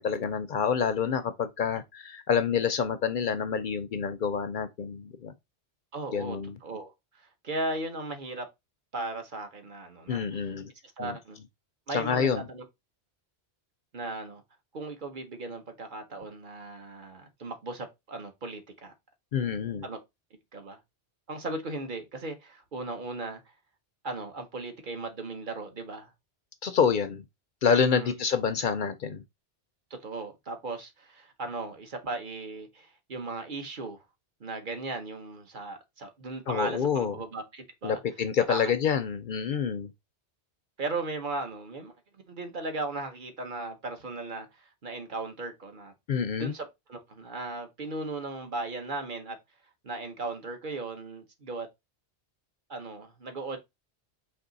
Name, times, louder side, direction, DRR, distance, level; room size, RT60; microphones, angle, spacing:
voice 1, 0.0-5.3 6.1-6.5 10.1-10.7 11.0-11.2 11.9-12.4 19.3-19.9 26.6-27.2 27.6-29.2 36.5-37.1 37.8-39.9 46.1-46.5, left 6 dB, 60° left, 0.5 m, -27 dB
voice 2, 5.9-6.9 7.2-8.5 8.9-10.5 11.0-11.4 11.9-12.6 13.9-14.4 14.7-18.9 19.8-20.0 20.5-20.8 21.3-23.4 24.0-26.1 27.9-28.2 29.9-34.0 34.4-38.0 38.5-38.7 40.8-41.9 42.3-49.4 49.8-51.7 52.7-53.6, right 2 dB, 50° right, 1.1 m, -37 dB
4.3 x 3.0 x 3.9 m
omnidirectional pair, 1.2 m